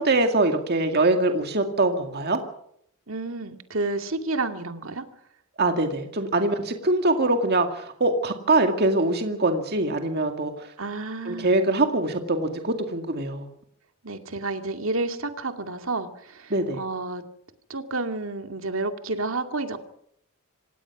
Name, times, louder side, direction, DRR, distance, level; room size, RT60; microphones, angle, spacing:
voice 1, 0.0-2.4 5.6-10.7 11.3-13.5 16.5-16.8, right 2 dB, 50° right, 5 dB, 2.2 m, -23 dB
voice 2, 3.1-5.0 10.8-11.5 14.0-17.2 17.7-19.8, right 3 dB, 65° right, 7 dB, 2.3 m, -30 dB
26.5 x 18.0 x 6.0 m, 0.71 s
head